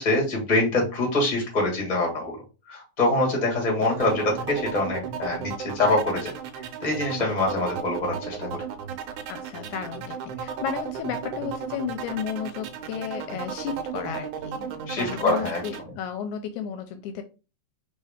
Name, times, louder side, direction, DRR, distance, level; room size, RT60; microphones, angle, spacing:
voice 1, 0.0-2.4 2.7-6.3 6.6-8.6 14.9-15.7, left 2 dB, 20° left, -1 dB, 1.2 m, -25 dB
sound 1, 3.8-15.8, right 7 dB, 80° right, 2.0 m, -35 dB
voice 2, 9.3-17.2, left 7 dB, 80° left, 7 dB, 1.9 m, -33 dB
4.0 x 3.7 x 3.5 m, 0.32 s
omnidirectional pair, 3.6 m